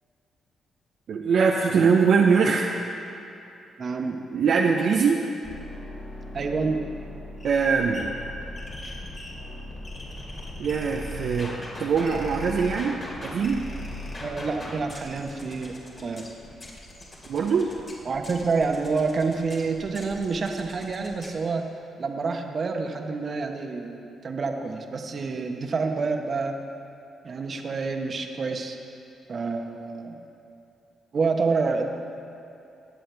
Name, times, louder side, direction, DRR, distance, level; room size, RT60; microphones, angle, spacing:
voice 1, 1.1-2.7 4.3-5.2 7.4-8.1 10.6-11.5 11.8-13.6 17.3-17.7, right 5 dB, 70° right, 0 dB, 0.7 m, -22 dB
voice 2, 3.8-4.2 6.3-6.8 14.2-15.8 16.0-16.3 18.1-21.6 22.0-26.5 27.2-28.8 29.3-30.2 31.1-31.9, right 4 dB, 50° right, 4 dB, 1.1 m, -28 dB
sound 1, 5.4-21.4, left 1 dB, 45° left, 2.9 m, -39 dB
20.5 x 7.6 x 3.4 m, 2.7 s
supercardioid pair, 60°, 0 cm